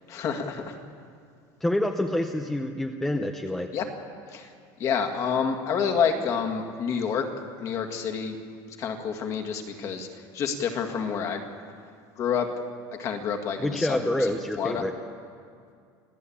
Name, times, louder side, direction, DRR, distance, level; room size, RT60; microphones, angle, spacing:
voice 1, 0.1-0.8 3.7-3.9 4.3-4.5 4.8-7.3 7.6-8.4 8.8-10.1 10.3-11.4 12.2-12.5 13.0-14.0 14.6-14.8, left 6 dB, 35° left, 5 dB, 1.9 m, -28 dB
voice 2, 1.6-3.8 13.6-14.9, left 1 dB, 5° left, 5 dB, 0.7 m, -27 dB
26.5 x 16.0 x 8.7 m, 2.2 s
cardioid pair, 180°, 9 cm